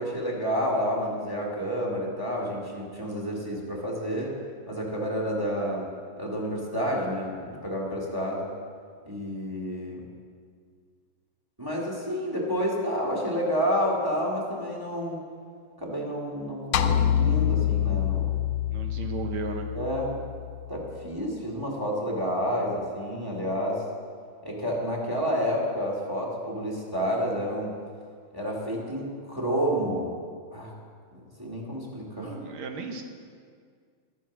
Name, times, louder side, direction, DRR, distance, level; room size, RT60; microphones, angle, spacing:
voice 1, 0.0-4.3 4.7-5.9 6.2-8.4 9.0-10.1 11.6-15.2 15.8-18.3 19.7-20.1 20.7-23.8 24.4-27.7 28.3-30.1 30.5-30.7 31.4-32.4, equal, 10° right, -3 dB, 2.0 m, -29 dB
sound 1, 16.7-21.1, left 10 dB, 90° left, 1.5 m, -26 dB
voice 2, 18.7-19.7 32.2-33.0, right 4 dB, 80° right, 5 dB, 1.9 m, -35 dB
12.5 x 9.1 x 6.1 m, 2.1 s
omnidirectional pair, 2.3 m